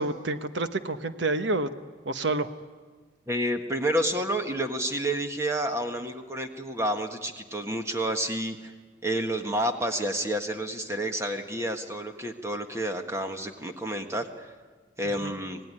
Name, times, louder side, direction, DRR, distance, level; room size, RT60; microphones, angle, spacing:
voice 1, 0.0-1.7 2.0-2.5 15.2-15.3, right 2 dB, 70° right, 10 dB, 1.1 m, -28 dB
voice 2, 3.3-8.7 9.0-14.5 15.0-15.6, right 1 dB, 15° right, 5 dB, 1.5 m, -29 dB
26.5 x 18.0 x 9.8 m, 1.4 s
head